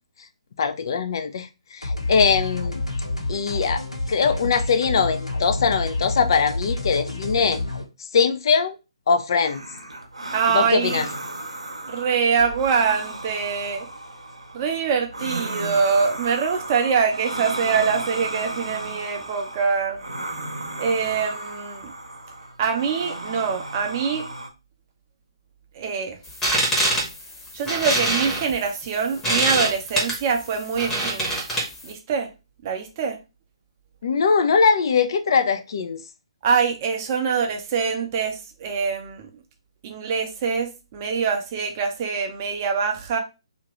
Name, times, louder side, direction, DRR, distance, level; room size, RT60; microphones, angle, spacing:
voice 1, 0.6-2.8 3.3-3.8 4.1-7.6 8.0-8.8 9.1-9.6 10.5-11.1 34.0-36.0, left 5 dB, 45° left, 0.4 m, -21 dB
sound 1, 1.8-7.8, left 2 dB, 85° left, 1.0 m, -28 dB
sound 2, 9.4-24.5, right 2 dB, 80° right, 0.7 m, -34 dB
voice 2, 10.3-11.0 11.9-13.9 14.5-20.0 20.8-21.9 22.6-24.3 25.7-26.2 27.5-31.3 31.8-32.3 32.6-33.2 36.4-39.3 39.8-43.2, right 6 dB, 30° right, 0.5 m, -24 dB
chair sqeaking, 26.3-31.9, right 1 dB, 10° left, 0.9 m, -24 dB
2.9 x 2.5 x 2.9 m
figure-of-eight pair, 135°, 3 cm